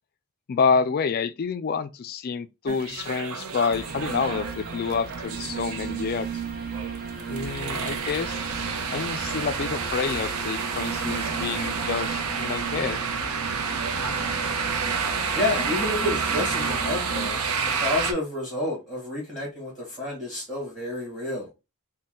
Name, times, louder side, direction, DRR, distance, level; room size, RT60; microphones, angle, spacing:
voice 1, 0.5-6.3 7.3-8.4 8.9-13.0, left 5 dB, 45° left, 0.3 m, -28 dB
sound 1, 2.7-18.1, right 5 dB, 85° right, 0.7 m, -30 dB
sound 2, 3.7-17.3, right 5 dB, 40° right, 0.6 m, -35 dB
voice 2, 15.3-17.4 17.6-21.5, left 2 dB, ahead, 1.5 m, -29 dB
4.1 x 2.2 x 3.7 m
head